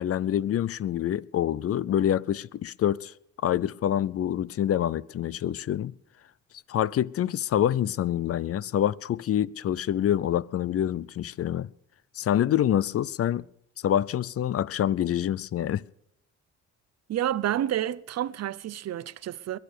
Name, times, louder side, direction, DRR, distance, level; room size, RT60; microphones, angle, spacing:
voice 1, 0.0-3.1 3.4-5.9 6.7-11.7 12.2-13.4 13.8-15.8, left 10 dB, 50° left, 0.5 m, -26 dB
voice 2, 17.1-19.6, right 11 dB, 55° right, 0.7 m, -29 dB
21.5 x 9.2 x 6.6 m
cardioid pair, 90°, 30 cm